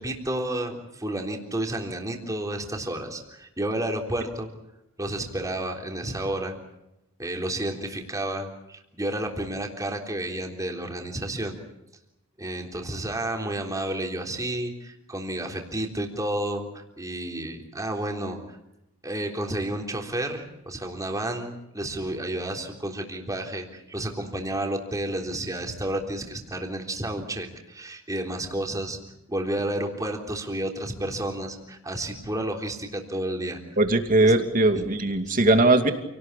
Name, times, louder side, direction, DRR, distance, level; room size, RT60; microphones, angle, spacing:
voice 1, 0.0-4.5 5.0-6.5 7.2-11.6 12.4-18.4 19.0-29.0 29.3-33.6 34.2-34.3 34.7-34.8 35.3-35.4, right 1 dB, 15° right, 2 dB, 3.6 m, -31 dB
voice 2, 33.8-35.9, right 2 dB, 40° right, 6 dB, 2.5 m, -20 dB
28.5 x 18.5 x 8.4 m, 0.90 s
head